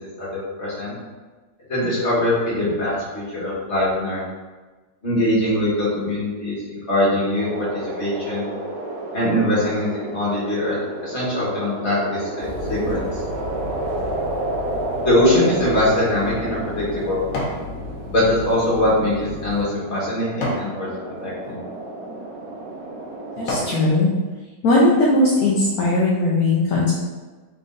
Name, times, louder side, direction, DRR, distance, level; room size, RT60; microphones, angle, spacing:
voice 1, 0.2-0.9 1.7-4.2 5.0-8.4 9.1-13.2 15.0-17.2 18.1-20.9 21.2-21.6, left 1 dB, 40° left, -8 dB, 1.6 m, -22 dB
sound 1, 7.4-23.9, right 2 dB, 65° right, 1.0 m, -32 dB
sound 2, 12.4-19.6, left 2 dB, 80° right, 2.3 m, -34 dB
sound 3, 15.8-17.7 18.1-20.7 21.3-21.6 22.3-22.4 22.9-23.8 24.3-24.4, left 1 dB, 90° left, 1.6 m, -32 dB
voice 2, 23.4-24.1 24.6-26.9, left 2 dB, 65° left, -5 dB, 1.1 m, -18 dB
4.3 x 3.7 x 2.5 m, 1.3 s
omnidirectional pair, 1.9 m